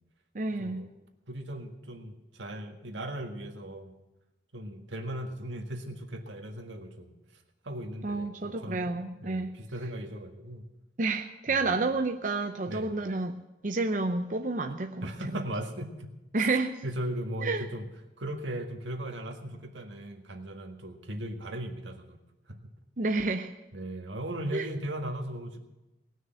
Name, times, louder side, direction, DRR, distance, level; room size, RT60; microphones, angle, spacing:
voice 1, 0.3-0.8 8.0-9.5 11.0-13.3 13.6-15.1 16.3-16.8 17.4-17.6 23.0-23.5 24.5-24.7, right 3 dB, 45° right, 5 dB, 0.6 m, -29 dB
voice 2, 1.3-3.9 4.5-8.9 9.2-10.6 11.5-11.7 12.7-12.9 15.0-16.1 16.4-16.5 16.8-17.9 18.2-22.2 22.5-22.6 23.7-25.6, right 1 dB, 85° right, 4 dB, 1.8 m, -38 dB
19.0 x 6.4 x 9.0 m, 0.99 s
head